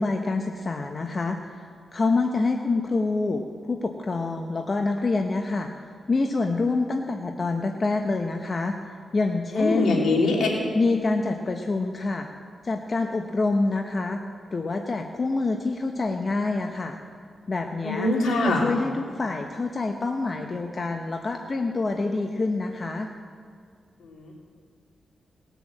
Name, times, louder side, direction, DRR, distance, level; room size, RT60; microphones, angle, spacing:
voice 1, 0.0-10.1 10.7-12.3 12.6-14.2 14.5-17.0 17.5-18.1 18.4-23.1, left 3 dB, 40° left, 3 dB, 0.9 m, -26 dB
voice 2, 9.5-10.5 17.8-18.7 24.0-24.3, left 2 dB, 80° left, -3 dB, 3.4 m, -23 dB
19.0 x 6.9 x 7.5 m, 2.1 s
cardioid pair, 65°, 0 cm